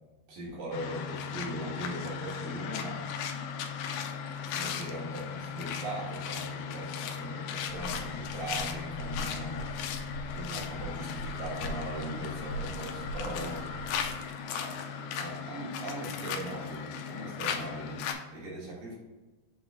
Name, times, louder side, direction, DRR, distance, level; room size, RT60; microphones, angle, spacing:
voice 1, 0.3-3.0 4.5-9.7 10.3-13.7 14.5-14.8 15.1-18.0 18.3-19.0, right 1 dB, 65° right, -5 dB, 3.4 m, -39 dB
sound 1, 0.7-18.1, left 7 dB, 85° left, 2.4 m, -37 dB
sound 2, 7.7-14.2, equal, 55° left, 2.8 m, -42 dB
7.1 x 3.6 x 4.7 m, 1.2 s
omnidirectional pair, 4.4 m